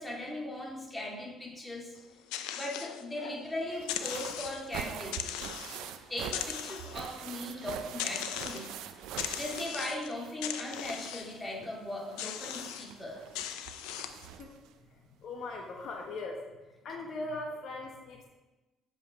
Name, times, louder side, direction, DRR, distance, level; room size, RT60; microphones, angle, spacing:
voice 1, 0.0-1.9 2.5-5.2 6.1-8.7 9.3-13.2, left 1 dB, 20° left, -2 dB, 2.2 m, -38 dB
sound 1, 2.0-3.4 3.8-4.7 5.1-5.9 6.2-7.2 8.0-8.7 9.2-10.1 10.4-11.4 12.2-12.9 13.3-14.3, left 10 dB, 85° left, 0.4 m, -39 dB
sound 2, 3.7-10.5 10.7-14.7 15.8-15.9 16.2-16.3, right 9 dB, 80° right, 0.4 m, -44 dB
voice 2, 15.2-16.4 16.8-18.3, left 2 dB, 65° left, 1 dB, 1.0 m, -39 dB
7.3 x 5.4 x 4.7 m, 1.1 s
supercardioid pair, 70°, 0 cm